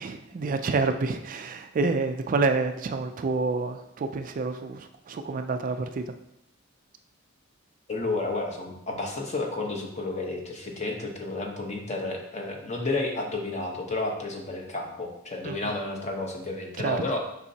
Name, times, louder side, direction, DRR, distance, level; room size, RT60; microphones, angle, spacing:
voice 1, 0.0-6.1 15.4-15.7 16.8-17.0, right 3 dB, 40° right, 8 dB, 0.3 m, -28 dB
voice 2, 7.9-17.2, left 2 dB, 35° left, 1 dB, 0.9 m, -31 dB
7.1 x 5.4 x 2.8 m, 0.83 s
head